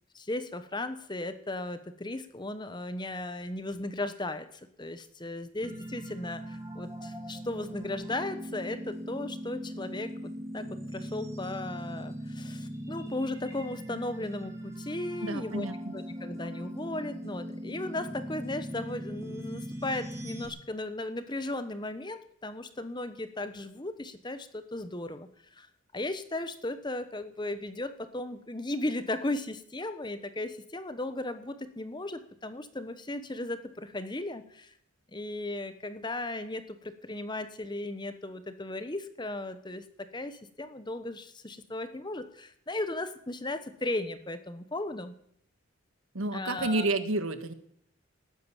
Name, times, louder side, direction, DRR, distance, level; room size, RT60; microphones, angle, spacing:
voice 1, 0.1-15.7 15.9-25.7 25.9-34.7 35.1-45.1 46.3-46.9, left 2 dB, 20° left, 11 dB, 1.1 m, -36 dB
sound 1, 5.6-20.5, equal, 15° right, 2.4 m, -40 dB
voice 2, 15.2-15.9 46.1-47.5, right 2 dB, 85° right, 10 dB, 1.7 m, -30 dB
19.0 x 9.6 x 7.2 m, 0.68 s
head